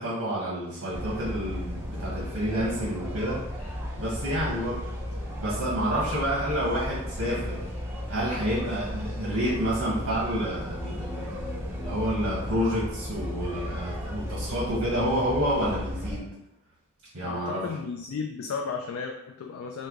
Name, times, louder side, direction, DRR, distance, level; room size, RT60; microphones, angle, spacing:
voice 1, 0.0-3.7 4.0-4.8 5.4-7.6 8.1-16.2 17.1-17.6, equal, 75° right, -6 dB, 1.0 m, -29 dB
sound 1, 0.9-16.2, left 1 dB, 10° right, 0.5 m, -35 dB
voice 2, 17.2-19.9, left 5 dB, 70° left, 2 dB, 0.3 m, -34 dB
3.2 x 2.2 x 3.5 m, 0.84 s
head